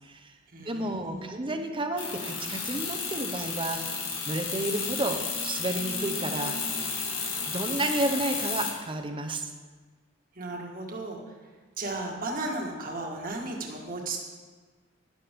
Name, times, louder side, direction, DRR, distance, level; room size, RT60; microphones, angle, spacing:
voice 1, 0.0-0.3 0.6-3.8 4.3-6.8 7.4-9.5, right 1 dB, 25° right, 6 dB, 0.9 m, -31 dB
voice 2, 0.5-1.7 10.3-11.3 11.8-14.2, right 2 dB, 45° right, 0 dB, 1.7 m, -35 dB
sound 1, 2.0-8.7, left 5 dB, 80° left, 2.0 m, -32 dB
13.0 x 10.5 x 3.7 m, 1.4 s
head